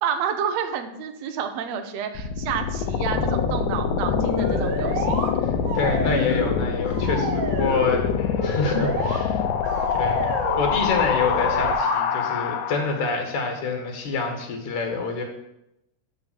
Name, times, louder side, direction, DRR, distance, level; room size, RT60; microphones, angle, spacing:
voice 1, 0.0-5.2, right 7 dB, 70° right, 7 dB, 1.8 m, -29 dB
sound 1, 2.1-13.1, left 7 dB, 85° left, 2.3 m, -25 dB
sound 2, 4.2-5.3 5.6-6.6 6.9-7.9 8.4-9.2 9.6-10.6 11.2-12.0, right 4 dB, 55° right, 1.4 m, -30 dB
voice 2, 5.4-9.4 10.0-10.3 10.6-15.2, left 4 dB, 70° left, 2 dB, 2.9 m, -27 dB
11.0 x 3.7 x 7.5 m, 0.86 s
omnidirectional pair, 3.6 m